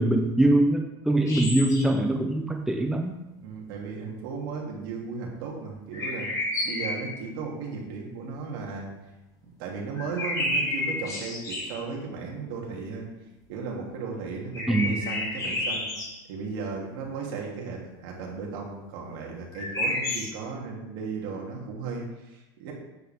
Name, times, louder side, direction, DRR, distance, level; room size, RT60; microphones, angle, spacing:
voice 1, 0.0-3.1 14.7-15.0, right 1 dB, 5° right, 2 dB, 0.7 m, -23 dB
sound 1, 1.2-2.0 5.9-7.2 10.0-11.8 14.5-16.1 19.5-20.3, left 1 dB, 30° left, 3.2 m, -30 dB
voice 2, 3.4-6.3 6.6-8.9 9.6-13.1 13.5-15.9 16.3-22.7, right 4 dB, 70° right, -1 dB, 2.8 m, -35 dB
9.2 x 8.3 x 3.6 m, 0.96 s
supercardioid pair, 145°, 12 cm